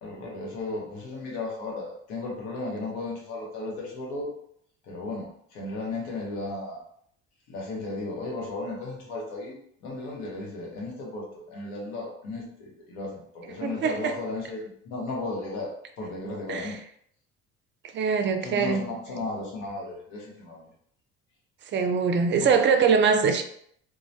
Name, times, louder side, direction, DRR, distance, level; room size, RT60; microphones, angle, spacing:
voice 1, 0.0-4.3 4.9-6.8 7.5-15.7 16.0-16.8 18.4-20.6 22.4-22.6, left 2 dB, 80° left, -2 dB, 0.9 m, -35 dB
voice 2, 13.6-14.1 16.5-16.8 17.9-18.8 21.7-23.4, right 5 dB, 40° right, 7 dB, 0.4 m, -23 dB
2.2 x 2.1 x 2.7 m, 0.67 s
supercardioid pair, 80°, 30 cm